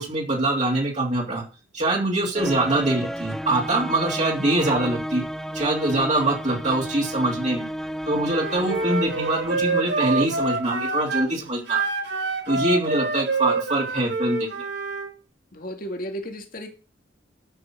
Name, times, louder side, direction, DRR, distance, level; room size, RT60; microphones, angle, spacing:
voice 1, 0.0-1.4 1.7-5.2 5.5-7.7 8.1-11.8 12.5-14.6, right 2 dB, 35° right, 3.2 m, -24 dB
sound 1, 2.3-10.7, equal, ahead, 0.7 m, -33 dB
Wind instrument woodwind instrument, 8.3-11.3 11.7-15.1, right 3 dB, 65° right, 7.6 m, -27 dB
voice 2, 15.5-16.7, equal, 45° left, 2.3 m, -33 dB
13.0 x 6.2 x 6.3 m
head